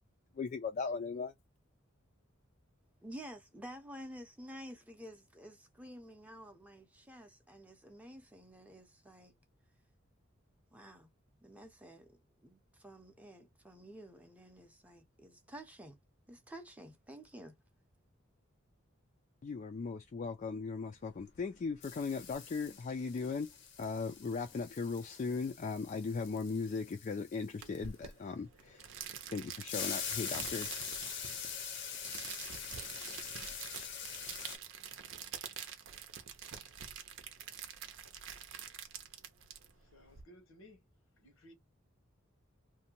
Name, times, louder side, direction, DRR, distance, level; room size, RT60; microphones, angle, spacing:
voice 1, 0.3-1.3 19.4-23.5 23.8-28.9 29.3-30.7, left 4 dB, 40° left, 0.3 m, -38 dB
voice 2, 3.0-9.3 10.7-11.1 11.4-16.0 16.3-17.6, equal, 5° right, 0.6 m, -51 dB
sound 1, 21.1-21.5 21.8-28.1 29.7-34.6, left 7 dB, 60° left, 0.7 m, -44 dB
sound 2, 27.6-40.2, right 8 dB, 65° right, 0.6 m, -47 dB
voice 3, 39.9-40.8 41.2-41.5, equal, 85° left, 1.0 m, -58 dB
2.6 x 2.2 x 2.8 m
head